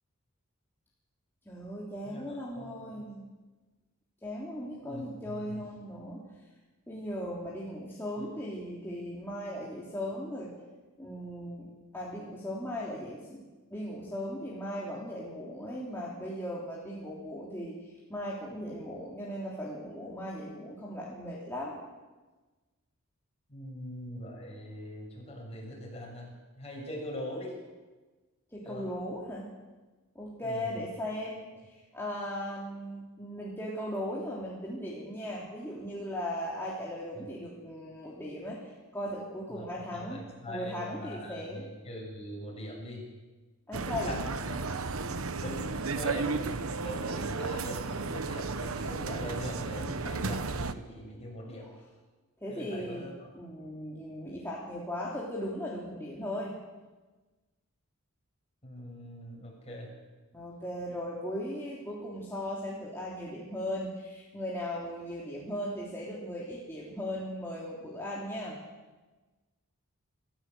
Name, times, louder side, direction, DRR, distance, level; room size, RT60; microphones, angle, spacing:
voice 1, 1.5-3.2 4.2-6.2 6.9-10.5 11.0-13.4 13.7-21.8 28.5-29.5 30.2-41.7 43.7-44.2 51.5-51.7 52.4-53.1 53.4-56.5 60.3-68.6, equal, 10° left, -6 dB, 3.4 m, -38 dB
voice 2, 2.0-3.0 4.8-5.7 8.2-8.4 23.5-27.5 28.6-28.9 30.4-30.9 37.2-37.3 39.5-43.1 43.8-44.6 45.4-51.7 52.5-53.3 58.6-59.9, equal, 30° left, -1 dB, 7.1 m, -42 dB
sound 1, 43.7-50.7, right 4 dB, 70° right, 1.0 m, -33 dB
27.0 x 14.5 x 8.0 m, 1.3 s
head